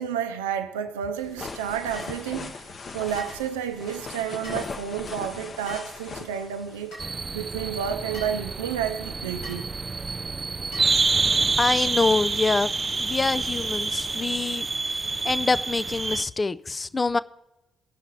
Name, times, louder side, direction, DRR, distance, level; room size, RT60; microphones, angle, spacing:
voice 1, 0.0-9.7, right 8 dB, 85° right, 0.5 m, -31 dB
sound 1, 1.2-7.0, left 4 dB, 50° left, 0.9 m, -39 dB
sound 2, 1.9-2.2 3.1-3.4 4.4-4.7 5.7-5.9 6.9-7.1 8.1-8.4 9.4-9.6 10.7-11.0, equal, 80° left, 4.6 m, -42 dB
sound 3, 7.0-16.2, right 3 dB, 35° right, 0.5 m, -27 dB
voice 2, 11.6-14.7 15.2-17.2, left 3 dB, 30° left, 0.4 m, -25 dB
17.5 x 5.9 x 4.2 m
hypercardioid pair, 40°, 0 cm